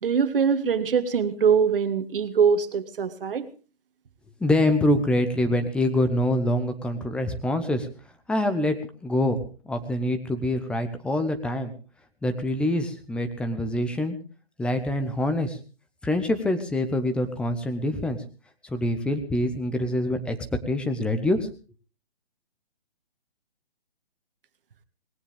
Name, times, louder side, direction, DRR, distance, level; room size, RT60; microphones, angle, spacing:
voice 1, 0.0-3.5, right 6 dB, 60° right, 11 dB, 1.7 m, -23 dB
voice 2, 4.4-7.9 8.3-8.8 9.0-9.4 9.7-11.7 12.2-14.2 14.6-15.6 16.0-18.2 18.6-20.4 20.7-21.5, left 1 dB, 5° left, 7 dB, 0.8 m, -25 dB
19.0 x 17.0 x 3.5 m, 0.35 s
figure-of-eight pair, 140°, 31 cm